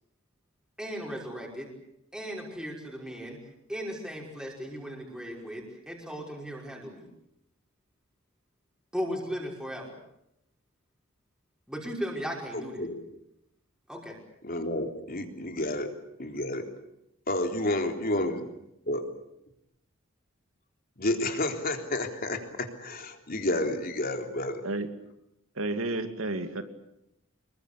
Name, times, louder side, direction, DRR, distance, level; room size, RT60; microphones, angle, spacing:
voice 1, 0.8-1.7 2.1-3.4 3.7-7.1 8.9-10.0 11.7-12.8 13.9-14.2, equal, 5° right, -2 dB, 5.4 m, -36 dB
voice 2, 12.5-13.0 14.4-15.9 16.2-16.7 17.3-18.5 18.9-19.0 21.0-24.6, left 1 dB, 45° left, 4 dB, 3.6 m, -30 dB
voice 3, 25.5-26.6, right 2 dB, 85° right, 8 dB, 2.7 m, -31 dB
26.5 x 22.5 x 8.4 m, 0.82 s
head